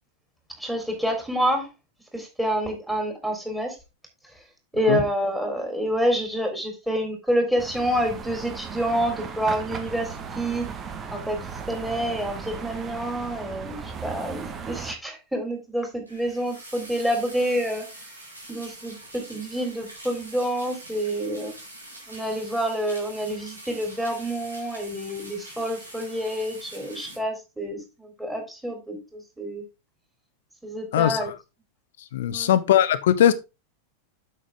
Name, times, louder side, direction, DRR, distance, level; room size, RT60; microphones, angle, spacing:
voice 1, 0.6-1.7 2.1-3.7 4.7-10.7 11.1-11.4 11.7-17.8 18.5-21.5 22.1-29.6 30.6-31.3 32.3-32.5, equal, 5° right, 3.6 m, -28 dB
sound 1, 7.6-14.9, right 6 dB, 25° right, 1.5 m, -36 dB
sound 2, 16.1-27.2, right 1 dB, 80° right, 4.0 m, -44 dB
voice 2, 32.1-33.3, left 11 dB, 60° left, 1.0 m, -19 dB
8.8 x 7.0 x 3.7 m
figure-of-eight pair, 90°, 0 cm